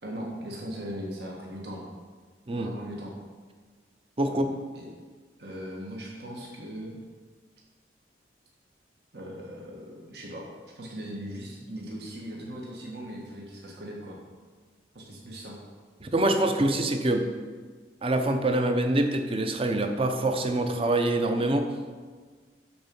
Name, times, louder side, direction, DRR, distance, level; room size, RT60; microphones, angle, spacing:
voice 1, 0.0-1.9 2.5-3.1 4.2-4.4 4.7-4.8 5.4-7.0 9.1-14.2 14.9-15.6, equal, 65° right, -2 dB, 1.6 m, -39 dB
voice 2, 4.2-4.5 16.0-17.2 18.0-21.7, right 1 dB, 30° right, 6 dB, 0.7 m, -25 dB
12.0 x 4.5 x 5.4 m, 1.5 s
head